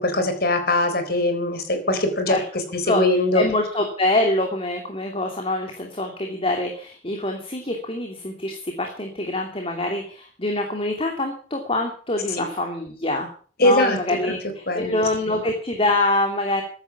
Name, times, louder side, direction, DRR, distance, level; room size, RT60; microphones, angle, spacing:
voice 1, 0.0-2.4 2.7-3.4 12.3-12.4 13.6-14.0 14.7-15.4, left 1 dB, 60° left, 8 dB, 4.3 m, -21 dB
voice 2, 3.3-13.3 13.6-16.6, left 2 dB, 30° left, 3 dB, 2.8 m, -25 dB
15.0 x 11.0 x 7.1 m, 0.43 s
head